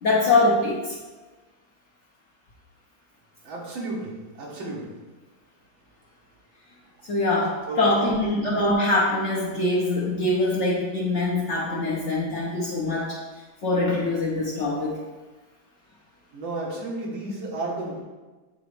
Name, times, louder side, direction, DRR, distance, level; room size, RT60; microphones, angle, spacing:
voice 1, 0.0-1.0 7.1-13.2 13.6-15.0, left 2 dB, 50° left, -4 dB, 0.9 m, -23 dB
voice 2, 3.5-4.1 4.4-4.9 7.7-8.4 16.3-18.0, right 2 dB, 90° right, -4 dB, 2.1 m, -32 dB
7.9 x 3.9 x 3.2 m, 1.3 s
omnidirectional pair, 2.1 m